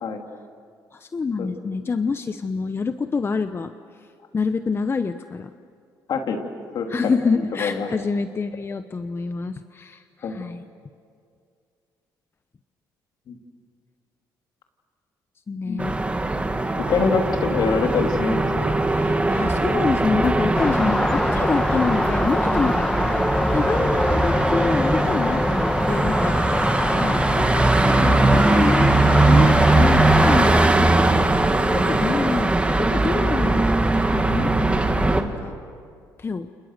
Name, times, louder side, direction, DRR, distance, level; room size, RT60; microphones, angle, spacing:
voice 1, 0.9-3.7 4.3-5.5 6.9-10.6 15.5-16.0 18.9-22.9 23.5-26.7 27.0-30.5 31.5-35.5 36.2-36.5, left 4 dB, 30° left, 10 dB, 0.9 m, -27 dB
voice 2, 7.3-7.9 10.2-10.4 13.3-13.4 15.6-15.9 16.9-18.8 19.7-19.8 30.8-31.0, left 5 dB, 65° left, 3 dB, 3.3 m, -25 dB
sound 1, 15.8-35.2, right 2 dB, 15° right, 2.1 m, -20 dB
sound 2, 20.5-30.7, left 1 dB, 10° left, 1.2 m, -24 dB
30.0 x 29.0 x 6.7 m, 2.3 s
cardioid pair, 80°, 8 cm